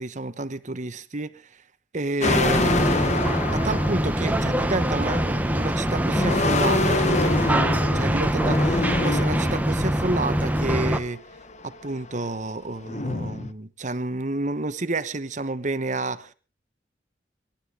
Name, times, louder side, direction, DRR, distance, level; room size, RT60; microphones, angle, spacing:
voice 1, 0.0-1.4 1.9-11.2 11.6-16.3, right 2 dB, 45° right, 13 dB, 1.1 m, -30 dB
sound 1, 2.2-4.8 5.7-9.7 10.6-10.8 11.1-12.4 12.8-13.5, left 2 dB, 40° left, 0.9 m, -27 dB
sound 2, 2.2-11.0, right 1 dB, 10° right, 1.2 m, -24 dB
27.0 x 12.0 x 3.8 m, 0.35 s
head